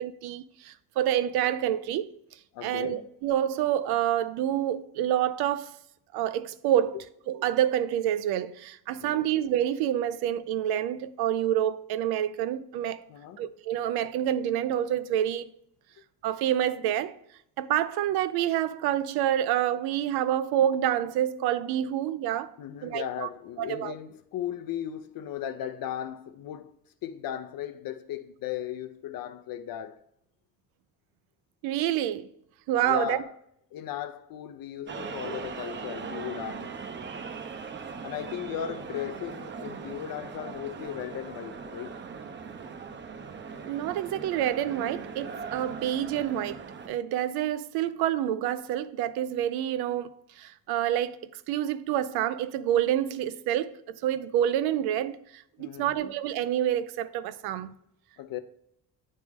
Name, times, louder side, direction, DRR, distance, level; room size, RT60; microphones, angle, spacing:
voice 1, 0.0-2.1 2.6-5.8 6.1-7.0 7.3-13.0 13.4-15.5 16.2-17.1 17.6-22.5 22.8-23.3 23.6-23.9 31.6-32.3 32.7-33.2 43.6-50.1 50.4-51.2 51.5-57.7, right 11 dB, 80° right, 0.5 m, -28 dB
voice 2, 2.5-3.1 6.9-7.0 8.9-9.2 13.1-13.4 22.6-26.7 27.0-30.0 32.8-33.3 33.7-36.8 38.0-42.0 55.6-56.1 58.2-58.4, left 10 dB, 65° left, 0.6 m, -36 dB
sound 1, 34.9-46.9, right 5 dB, 30° right, 0.6 m, -40 dB
9.2 x 3.2 x 3.6 m
cardioid pair, 85°, 37 cm